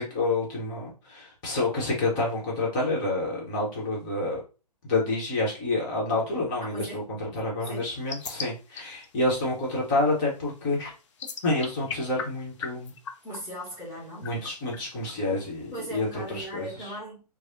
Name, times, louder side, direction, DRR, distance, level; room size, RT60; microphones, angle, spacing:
voice 1, 0.0-4.4 4.8-10.9 11.4-12.9 14.2-16.7, left 2 dB, 30° left, 1.0 m, -28 dB
voice 2, 6.6-7.0 7.6-7.9 13.2-14.3 15.7-17.2, right 1 dB, 10° right, 0.9 m, -38 dB
sound 1, 7.6-16.7, left 6 dB, 45° left, 0.4 m, -43 dB
3.1 x 2.0 x 2.7 m
figure-of-eight pair, 135°, 21 cm